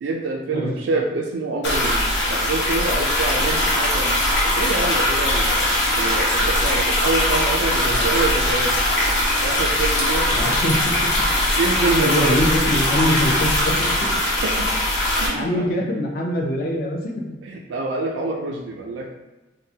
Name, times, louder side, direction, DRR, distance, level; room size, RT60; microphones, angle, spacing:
voice 1, 0.0-4.2 4.6-8.8 9.4-10.6 11.6-12.4 14.4-14.7 15.2-15.7 17.4-19.1, right 3 dB, 85° right, 1 dB, 0.3 m, -26 dB
sound 1, 1.6-15.3, left 1 dB, 85° left, 0.9 m, -20 dB
voice 2, 10.3-11.0 12.0-13.7 15.3-17.3, left 1 dB, 55° left, -1 dB, 0.5 m, -23 dB
3.6 x 2.0 x 2.7 m, 1.1 s
head